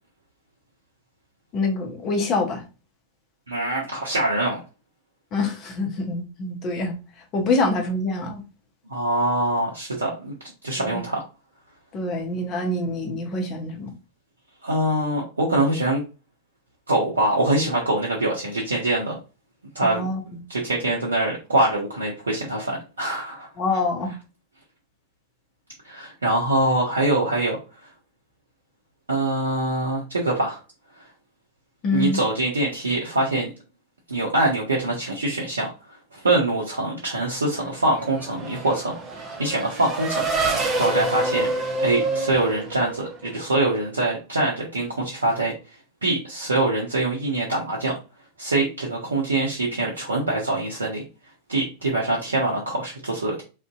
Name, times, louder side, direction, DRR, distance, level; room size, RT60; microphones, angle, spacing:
voice 1, 1.5-2.6 5.3-6.9 7.3-8.4 10.8-11.0 11.9-13.9 19.8-20.4 23.6-24.1 31.8-32.2, left 2 dB, 35° left, 0.6 m, -25 dB
voice 2, 3.5-4.6 8.9-10.3 10.6-11.2 14.6-16.0 16.9-19.2 19.8-20.1 20.5-23.5 25.8-27.6 29.1-30.6 31.9-33.5 34.1-35.7 36.1-38.9 39.4-40.2 40.8-41.5 41.8-45.5 46.0-47.9 48.4-51.0 51.5-53.4, right 2 dB, 75° right, 0.5 m, -24 dB
Race car auto racing / Accelerating revving vroom, 37.4-43.4, right 2 dB, 25° right, 0.6 m, -27 dB
2.5 x 2.1 x 2.3 m
figure-of-eight pair, 90°, 0 cm